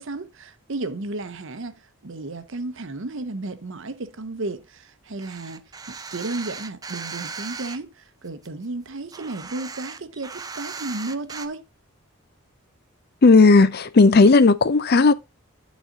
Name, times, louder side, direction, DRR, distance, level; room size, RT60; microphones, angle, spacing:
voice 1, 0.0-11.6, right 2 dB, 60° right, 0.8 m, -33 dB
sound 1, 5.2-7.8 8.3-11.5, right 5 dB, 15° right, 0.4 m, -37 dB
voice 2, 13.2-15.1, left 3 dB, 45° left, 0.5 m, -14 dB
11.5 x 4.2 x 3.8 m
head